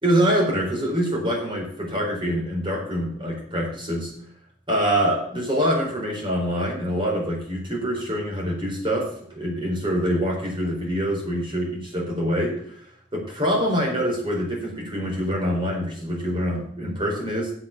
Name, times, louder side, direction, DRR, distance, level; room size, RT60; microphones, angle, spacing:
voice 1, 0.0-4.1 4.7-12.8 13.1-17.5, equal, 25° right, -1 dB, 4.3 m, -25 dB
8.0 x 7.5 x 8.3 m, 0.62 s
head